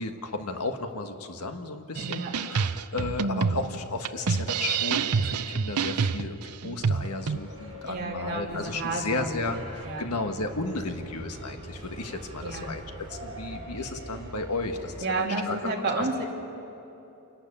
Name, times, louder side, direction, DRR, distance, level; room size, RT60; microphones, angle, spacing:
voice 1, 0.0-12.8 13.1-15.6 16.0-16.1, left 3 dB, 85° left, 6 dB, 1.6 m, -34 dB
sound 1, 1.9-7.4, right 5 dB, 90° right, 0.6 m, -28 dB
voice 2, 2.0-2.3 7.8-9.6 9.8-10.1 12.4-12.8 15.0-16.3, right 3 dB, 45° right, -1 dB, 2.8 m, -31 dB
sound 2, 6.8-15.0, right 1 dB, 25° right, 4.2 m, -43 dB
28.5 x 12.0 x 8.6 m, 3.0 s
head